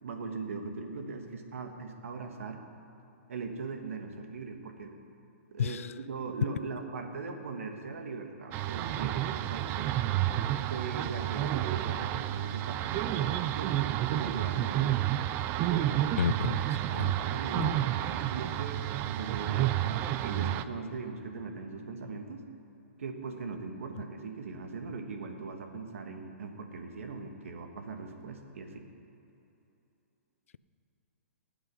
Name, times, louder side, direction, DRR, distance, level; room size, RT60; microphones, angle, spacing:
voice 1, 0.0-2.6 3.3-5.0 5.5-9.9 10.6-15.0 15.7-16.3 16.7-22.4 23.0-28.9, right 4 dB, 75° right, 5 dB, 1.7 m, -40 dB
voice 2, 5.6-5.9 16.2-17.1 17.6-17.8, left 7 dB, 75° left, 16 dB, 0.4 m, -32 dB
sound 1, 8.5-20.6, right 13 dB, 30° right, 0.4 m, -30 dB
19.0 x 8.0 x 5.4 m, 2.8 s
hypercardioid pair, 135°, 7 cm